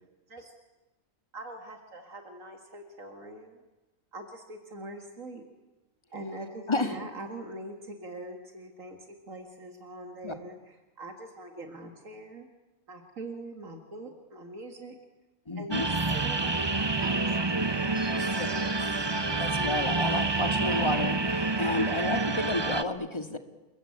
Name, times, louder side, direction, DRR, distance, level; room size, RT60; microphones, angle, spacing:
voice 1, 1.3-3.6 4.1-5.5 6.1-12.5 12.9-15.0 15.6-20.1, right 1 dB, 75° right, 4 dB, 2.5 m, -43 dB
voice 2, 6.7-7.0 10.2-10.3 15.5-15.9 18.4-18.5 19.4-23.4, left 2 dB, 20° left, 7 dB, 2.0 m, -31 dB
sound 1, 15.7-22.8, right 3 dB, 20° right, 0.9 m, -28 dB
29.0 x 21.5 x 8.7 m, 1.1 s
omnidirectional pair, 1.4 m